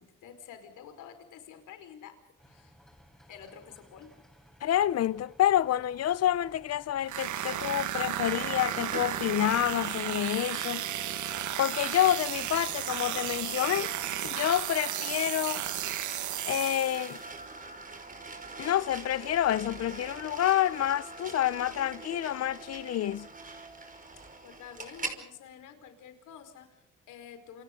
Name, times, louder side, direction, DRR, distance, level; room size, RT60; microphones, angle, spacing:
voice 1, 0.0-2.2 2.4-2.7 3.3-4.2 24.2-27.6, left 8 dB, 85° left, 4.8 m, -49 dB
sound 1, 2.4-13.5, equal, ahead, 5.0 m, -58 dB
voice 2, 4.6-10.8 11.6-13.9 14.2-15.6 16.5-17.2 18.6-23.3, left 12 dB, 55° left, 0.8 m, -28 dB
sound 2, 7.1-17.2, right 11 dB, 75° right, 1.5 m, -34 dB
sound 3, 8.6-25.2, right 3 dB, 25° right, 5.3 m, -44 dB
29.5 x 28.5 x 3.9 m
cardioid pair, 90°, 30 cm